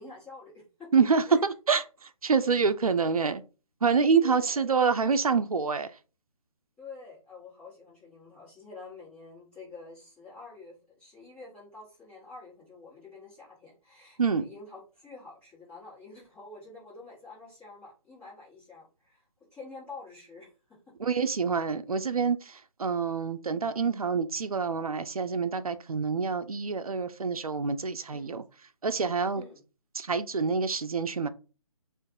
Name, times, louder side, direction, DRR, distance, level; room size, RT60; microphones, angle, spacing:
voice 1, 0.0-0.9 1.3-1.4 4.2-4.8 6.8-19.2 19.5-20.5 21.2-21.3 28.1-28.4 29.3-29.6, left 3 dB, 5° left, 1.3 m, -48 dB
voice 2, 0.9-1.8 2.2-3.4 3.8-5.9 14.2-14.4 21.0-28.4 28.8-29.4 30.0-31.3, right 5 dB, 80° right, 0.4 m, -26 dB
2.5 x 2.4 x 3.7 m
figure-of-eight pair, 145°, 18 cm